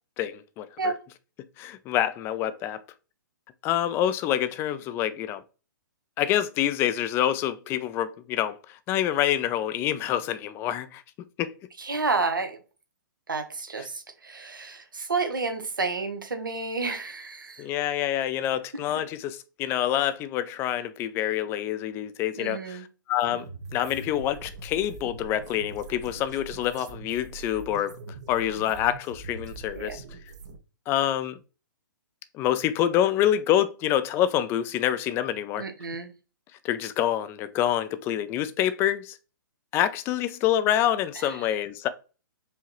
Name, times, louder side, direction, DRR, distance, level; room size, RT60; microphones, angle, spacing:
voice 1, 0.2-0.9 1.6-2.8 3.6-5.4 6.2-11.0 11.4-11.5 13.8-13.9 17.6-23.5 23.7-28.0 28.3-30.0 30.9-31.4 32.3-35.6 36.6-39.2 39.7-41.9, left 11 dB, 20° left, 0.4 m, -26 dB
voice 2, 11.8-12.6 13.3-17.6 22.4-22.8 29.8-30.0 35.6-36.1, right 4 dB, 80° right, 0.9 m, -30 dB
sound 1, 23.2-30.6, right 4 dB, 55° right, 0.8 m, -42 dB
4.8 x 2.8 x 3.0 m
figure-of-eight pair, 120°, 11 cm